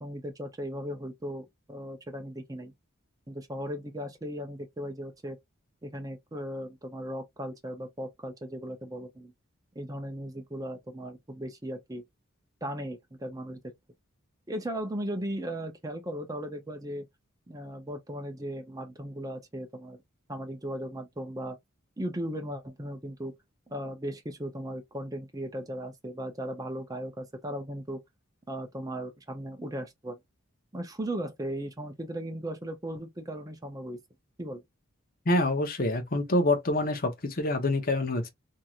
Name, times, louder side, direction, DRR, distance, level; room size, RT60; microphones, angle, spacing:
voice 1, 0.0-2.7 3.3-5.4 5.8-9.3 9.8-12.0 12.6-13.6 14.5-17.1 17.5-20.0 20.3-21.6 22.0-23.3 23.7-28.0 28.5-30.2 30.7-34.0 34.4-34.6, equal, 15° right, 0.6 m, -37 dB
voice 2, 35.3-38.3, left 1 dB, 45° left, 0.8 m, -26 dB
3.0 x 2.7 x 2.4 m
head